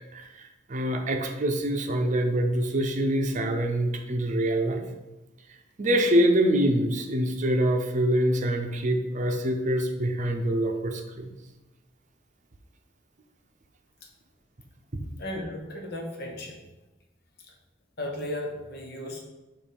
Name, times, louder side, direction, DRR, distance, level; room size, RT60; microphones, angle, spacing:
voice 1, 0.1-4.8 5.8-11.3 14.9-15.1, right 1 dB, 40° right, 4 dB, 0.7 m, -25 dB
voice 2, 15.2-16.6 18.0-19.3, left 1 dB, 60° left, 1 dB, 1.2 m, -35 dB
7.1 x 2.7 x 5.2 m, 1.1 s
head